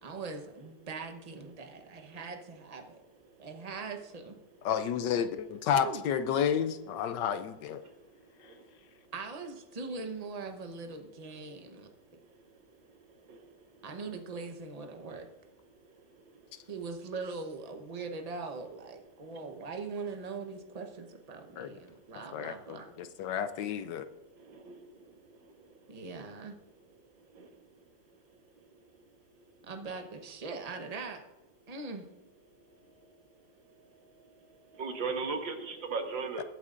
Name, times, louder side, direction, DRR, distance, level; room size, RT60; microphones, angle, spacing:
voice 1, 0.0-3.0 3.4-4.3 5.7-6.0 9.1-11.9 13.8-15.3 16.7-22.9 25.9-26.6 29.6-31.2 31.7-32.0, right 4 dB, 30° right, 4 dB, 0.7 m, -41 dB
voice 2, 4.6-7.8 21.6-21.7 22.3-24.1 36.4-36.5, left 8 dB, 75° left, 11 dB, 1.1 m, -31 dB
voice 3, 34.7-36.4, right 4 dB, 75° right, 4 dB, 2.0 m, -35 dB
21.5 x 8.9 x 2.5 m, 1.1 s
omnidirectional pair, 2.1 m